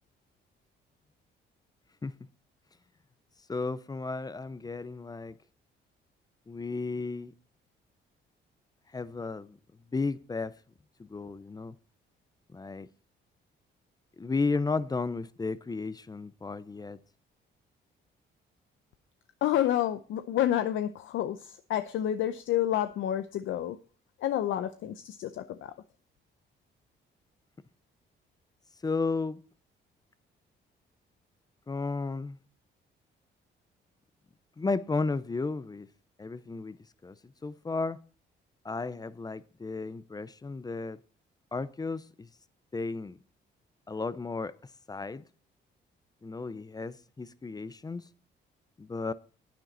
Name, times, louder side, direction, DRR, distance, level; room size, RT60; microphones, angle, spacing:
voice 1, 3.5-5.3 6.5-7.3 8.9-9.6 9.9-10.5 11.0-11.7 12.5-12.9 14.2-17.0 28.8-29.4 31.7-32.4 34.6-35.9 36.2-36.8 37.0-38.0 38.6-41.0 41.5-42.3 42.7-43.2 43.9-44.5 44.9-45.2 46.2-48.0 48.8-49.1, left 3 dB, 20° left, 0.6 m, -33 dB
voice 2, 19.4-23.8 24.2-25.7, left 11 dB, 75° left, 0.6 m, -29 dB
10.5 x 9.1 x 4.0 m
cardioid pair, 90°, 20 cm